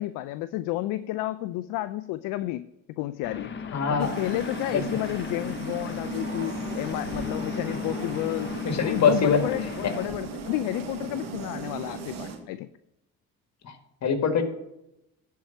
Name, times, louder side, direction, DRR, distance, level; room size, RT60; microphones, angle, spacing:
voice 1, 0.0-2.6 3.0-3.5 3.9-8.5 8.8-12.7, left 16 dB, 70° left, 13 dB, 0.5 m, -31 dB
sound 1, 3.2-10.1, left 6 dB, 35° left, 1.1 m, -35 dB
voice 2, 3.7-4.1 4.7-5.0 8.6-9.4 9.8-9.9 13.6-13.7 14.0-14.4, left 6 dB, 50° left, 6 dB, 1.9 m, -23 dB
sound 2, 4.0-12.4, right 5 dB, 70° right, 1.9 m, -37 dB
10.5 x 4.7 x 7.1 m, 0.86 s
supercardioid pair, 70°, 34 cm